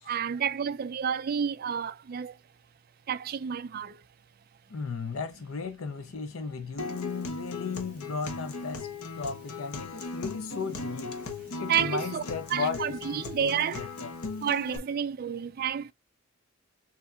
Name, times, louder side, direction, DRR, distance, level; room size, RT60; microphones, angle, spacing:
voice 1, 0.0-2.3 3.1-4.0 11.3-12.2 12.5-14.0 14.4-15.9, right 8 dB, 45° right, 0.3 m, -30 dB
voice 2, 4.7-8.9 9.2-11.2 11.6-14.1, left 5 dB, 70° left, 0.6 m, -35 dB
Acoustic guitar, 6.8-14.8, left 3 dB, 90° left, 1.1 m, -38 dB
6.5 x 2.7 x 2.3 m
head